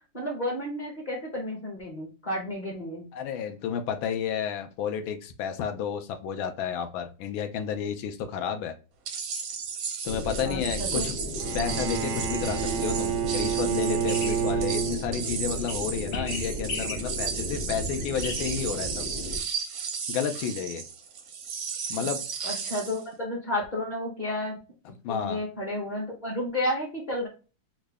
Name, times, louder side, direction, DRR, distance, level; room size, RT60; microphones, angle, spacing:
voice 1, 0.1-3.0 10.4-11.0 22.0-22.1 22.4-24.6 25.1-27.3, left 1 dB, 30° left, -2 dB, 0.8 m, -32 dB
voice 2, 3.1-8.7 10.0-11.2 11.5-19.0 20.1-20.8 21.9-22.2 25.0-25.4, left 7 dB, 85° left, 6 dB, 1.4 m, -31 dB
sound 1, 9.1-23.0, right 6 dB, 65° right, 0.9 m, -34 dB
sound 2, 10.1-19.4, left 1 dB, 65° left, 0.6 m, -35 dB
Bowed string instrument, 11.4-15.5, right 8 dB, 80° right, 1.3 m, -29 dB
3.8 x 2.1 x 3.3 m, 0.34 s
omnidirectional pair, 2.1 m